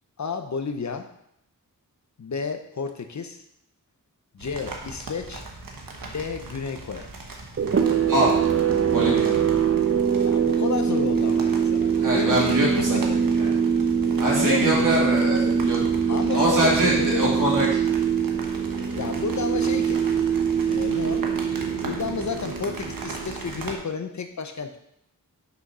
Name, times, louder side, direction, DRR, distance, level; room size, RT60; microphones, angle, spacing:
voice 1, 0.2-1.1 2.2-3.4 4.3-5.4 6.0-7.1 10.3-13.2 14.0-15.0 16.1-17.3 19.0-20.0 20.7-21.3 21.8-24.8, left 5 dB, 55° left, 7 dB, 0.8 m, -31 dB
sound 1, 4.4-23.8, right 3 dB, 85° right, 1.3 m, -39 dB
sound 2, 7.6-23.9, right 7 dB, 45° right, 0.7 m, -23 dB
voice 2, 8.9-9.3 12.0-13.0 13.3-13.5 14.2-15.8 16.1-17.7, right 1 dB, 70° right, -5 dB, 3.0 m, -23 dB
6.3 x 5.9 x 5.5 m, 0.75 s
wide cardioid pair, 110°, 33 cm